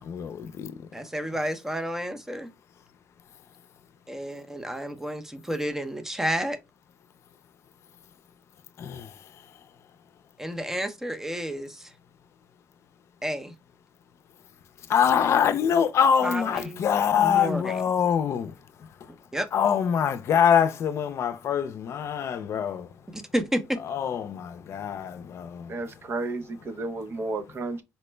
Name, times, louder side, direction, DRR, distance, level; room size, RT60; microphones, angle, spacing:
voice 1, 0.0-0.9 8.8-9.7 14.8-23.2 23.8-25.8, left 8 dB, 65° left, 0.4 m, -25 dB
voice 2, 0.9-2.5 4.1-6.6 10.4-11.9 13.2-13.5 16.2-16.9 17.2-17.7 19.3-19.5 23.1-23.8, equal, 10° right, 0.6 m, -30 dB
voice 3, 25.7-27.8, right 3 dB, 50° right, 0.6 m, -32 dB
4.3 x 2.0 x 3.2 m
cardioid pair, 90°, 5 cm